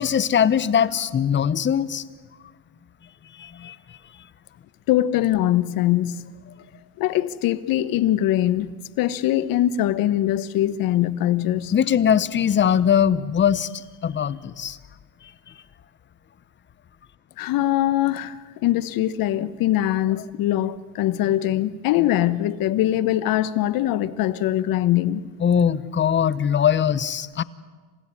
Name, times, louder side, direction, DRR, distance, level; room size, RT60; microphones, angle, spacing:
voice 1, 0.0-2.0 3.4-3.8 11.7-14.8 25.4-27.4, left 8 dB, 25° left, 0.9 m, -21 dB
voice 2, 4.9-6.5 7.0-8.7 9.0-11.7 17.4-18.4 18.6-25.2, left 13 dB, 50° left, 1.2 m, -22 dB
28.0 x 16.0 x 9.8 m
supercardioid pair, 105°, 44 cm